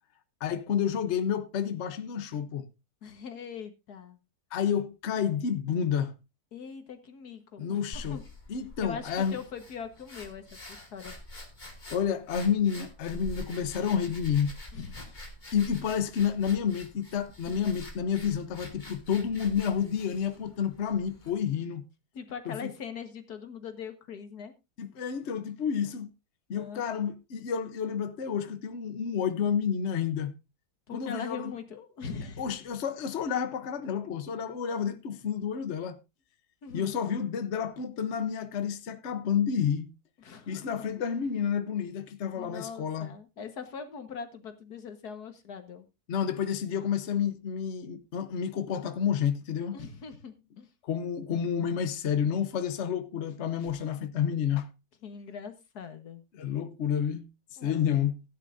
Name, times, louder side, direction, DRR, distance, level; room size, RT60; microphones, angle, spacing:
voice 1, 0.4-2.7 4.5-6.1 7.6-8.2 8.5-9.4 11.9-14.6 15.5-21.8 22.5-22.7 24.8-26.1 26.5-30.3 30.9-31.5 32.4-36.0 36.7-39.9 40.5-43.1 46.1-49.8 50.8-54.7 56.3-57.3 57.6-58.2, left 8 dB, 50° left, 1.1 m, -30 dB
voice 2, 3.0-4.2 6.5-8.2 8.8-11.1 14.7-15.0 17.5-17.7 22.1-24.5 26.6-27.0 30.9-32.5 36.6-36.9 40.2-40.9 42.3-45.9 49.7-50.7 55.0-56.2 57.6-57.9, left 6 dB, 85° left, 2.0 m, -41 dB
sound 1, 7.9-21.4, left 1 dB, 30° left, 2.6 m, -46 dB
16.0 x 10.0 x 2.6 m
omnidirectional pair, 1.6 m